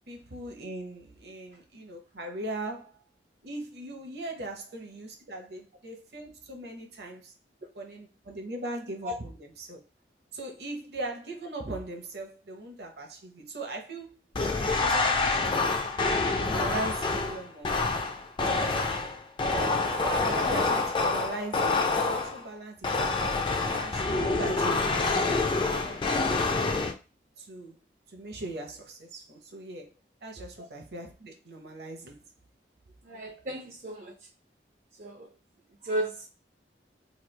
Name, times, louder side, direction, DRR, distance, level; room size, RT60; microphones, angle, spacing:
voice 1, 0.1-3.0 3.4-7.3 7.7-9.8 10.3-14.2 14.8-15.7 16.2-17.8 18.4-18.9 19.5-23.4 23.8-26.5 27.4-27.7 28.1-29.9 30.2-32.2, right 2 dB, 65° right, 0.8 m, -39 dB
sound 1, 14.3-22.4 22.8-26.9, left 3 dB, 25° left, 0.3 m, -27 dB
voice 2, 33.0-34.3 35.0-35.3 35.8-36.3, right 1 dB, 45° right, 0.4 m, -34 dB
3.0 x 2.3 x 3.2 m
head